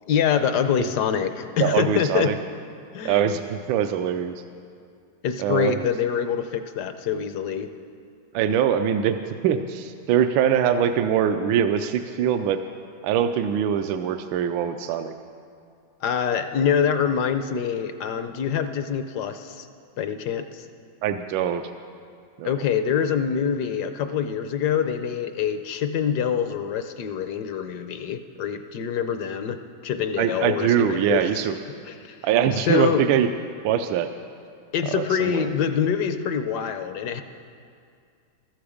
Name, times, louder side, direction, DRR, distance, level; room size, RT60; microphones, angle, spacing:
voice 1, 0.1-2.3 2.9-3.2 5.2-7.7 16.0-19.7 20.0-20.7 22.4-31.2 31.9-32.2 32.6-33.0 34.7-37.2, left 8 dB, 70° left, 9 dB, 1.0 m, -25 dB
voice 2, 1.6-2.4 3.0-4.4 5.4-5.8 8.3-12.6 13.0-15.1 21.0-21.6 22.4-22.6 30.2-31.6 32.2-33.3 33.6-34.1 34.8-35.5, right 9 dB, 80° right, 8 dB, 1.3 m, -23 dB
14.0 x 13.5 x 5.0 m, 2.3 s
omnidirectional pair, 2.1 m